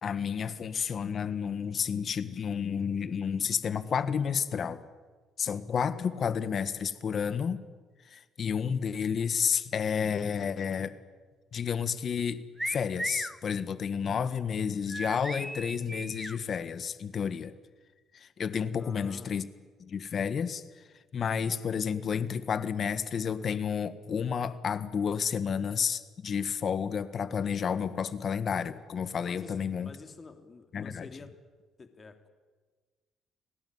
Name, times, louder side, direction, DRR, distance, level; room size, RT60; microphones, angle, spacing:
voice 1, 0.0-4.8 5.4-7.6 8.1-10.9 11.5-17.5 18.1-19.5 19.8-20.6 21.1-29.9 30.7-31.1, left 7 dB, 40° left, 13 dB, 1.7 m, -31 dB
sound 1, 12.6-13.4 14.9-16.4, right 1 dB, 5° right, 1.2 m, -36 dB
voice 2, 18.7-19.3 29.3-31.4 31.8-32.3, left 4 dB, 25° left, 6 dB, 2.9 m, -49 dB
30.0 x 19.5 x 9.7 m, 1.4 s
cardioid pair, 135°, 0 cm